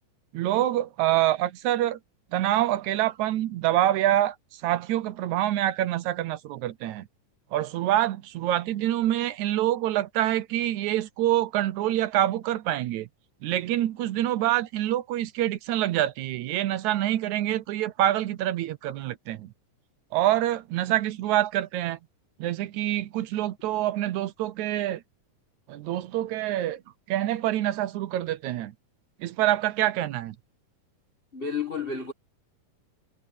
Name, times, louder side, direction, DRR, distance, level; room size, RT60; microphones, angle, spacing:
voice 1, 0.3-2.0 2.3-7.1 7.5-13.1 13.4-19.5 20.1-22.0 22.4-25.0 25.7-26.8 27.1-28.7 29.2-30.4, right 13 dB, 70° right, 2.0 m, -26 dB
voice 2, 31.3-32.1, left 5 dB, 30° left, 0.9 m, -31 dB
omnidirectional pair, 3.7 m